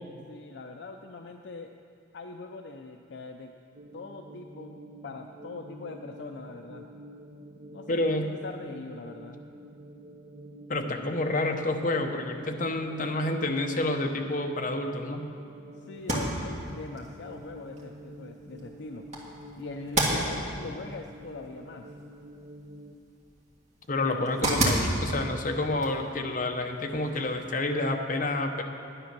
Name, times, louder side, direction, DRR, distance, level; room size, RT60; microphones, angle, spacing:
voice 1, 0.3-1.7 2.1-3.5 3.9-6.9 7.7-9.4 10.9-11.1 15.7-19.0 19.6-22.0, left 3 dB, 60° left, 4 dB, 0.5 m, -42 dB
sound 1, 3.7-22.9, right 1 dB, 55° right, 0.7 m, -47 dB
voice 2, 7.9-8.3 10.7-15.3 23.9-28.6, left 2 dB, 45° left, 3 dB, 0.8 m, -29 dB
sound 2, 15.9-27.6, right 1 dB, 35° right, 1.8 m, -34 dB
10.0 x 10.0 x 6.0 m, 2.5 s
head